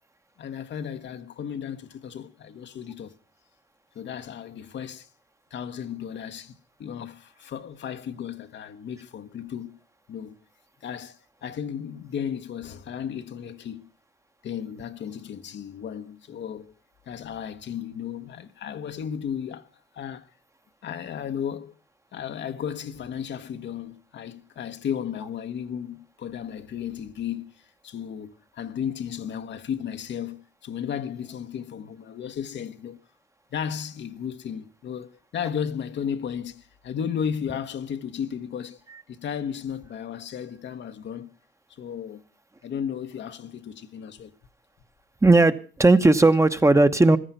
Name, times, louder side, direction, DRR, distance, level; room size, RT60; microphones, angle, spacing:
voice 1, 0.4-3.1 3.9-5.1 5.5-6.5 6.8-9.8 10.1-10.4 10.8-13.9 14.4-16.7 17.1-19.7 19.9-20.3 20.8-21.7 22.1-27.5 27.8-33.0 33.5-38.8 39.1-41.3 41.7-42.2 42.6-44.3, left 8 dB, 65° left, 1.2 m, -34 dB
voice 2, 45.2-47.2, right 2 dB, 15° right, 1.1 m, -17 dB
15.5 x 13.5 x 5.7 m
cardioid pair, 90°, 20 cm